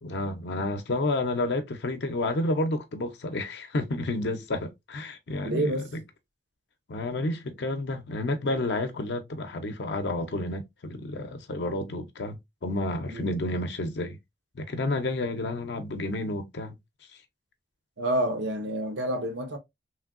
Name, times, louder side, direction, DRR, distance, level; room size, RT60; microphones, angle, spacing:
voice 1, 0.0-6.0 6.9-14.2 14.5-16.8, left 2 dB, 70° left, 0.6 m, -30 dB
voice 2, 5.4-5.9 13.1-13.3 18.0-19.6, right 1 dB, 80° right, 0.7 m, -28 dB
3.2 x 2.6 x 2.4 m
head